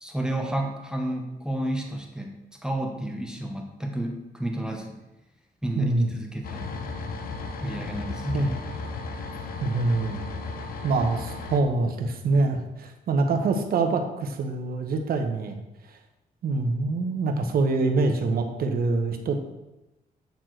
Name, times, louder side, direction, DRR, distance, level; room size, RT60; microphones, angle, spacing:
voice 1, 0.0-2.3 2.6-5.0 5.6-6.8 7.6-8.5, right 1 dB, 5° right, 1 dB, 0.9 m, -31 dB
voice 2, 5.8-6.1 8.3-8.5 9.6-10.2 10.8-15.6 16.4-19.4, right 3 dB, 70° right, 5 dB, 0.9 m, -25 dB
sound 1, 6.4-11.6, left 3 dB, 70° left, 0.7 m, -35 dB
8.0 x 4.4 x 4.5 m, 0.98 s
cardioid pair, 125°, 16 cm